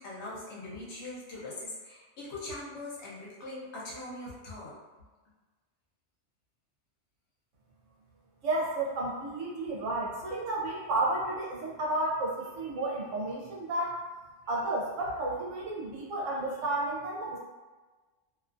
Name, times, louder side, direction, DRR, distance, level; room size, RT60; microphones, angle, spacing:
voice 1, 0.0-4.7, left 2 dB, 65° left, -5 dB, 1.1 m, -41 dB
voice 2, 8.4-14.0 14.5-17.4, right 2 dB, 80° right, -3 dB, 1.0 m, -32 dB
2.6 x 2.4 x 2.5 m, 1.3 s
omnidirectional pair, 1.2 m